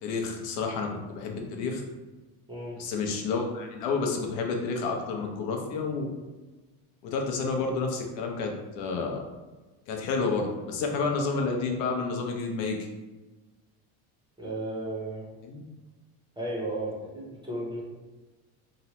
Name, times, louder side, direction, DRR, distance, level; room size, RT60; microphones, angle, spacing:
voice 1, 0.0-1.8 2.8-6.1 7.0-9.2 9.9-12.9 15.4-15.6, left 4 dB, 75° left, 2 dB, 0.6 m, -30 dB
voice 2, 2.5-2.8 14.4-15.3 16.4-17.8, right 1 dB, 10° right, -5 dB, 0.5 m, -34 dB
2.8 x 2.0 x 2.8 m, 1.2 s
cardioid pair, 125°, 45 cm